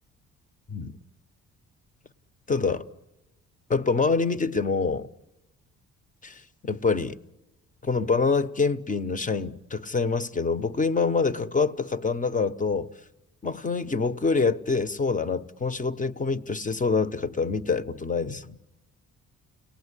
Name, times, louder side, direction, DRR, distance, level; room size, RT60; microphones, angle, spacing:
voice 1, 2.5-2.9 3.7-5.1 6.2-7.2 7.8-12.9 13.4-18.6, left 4 dB, 25° left, 0.9 m, -26 dB
29.0 x 19.0 x 9.9 m
cardioid pair, 90°, 30 cm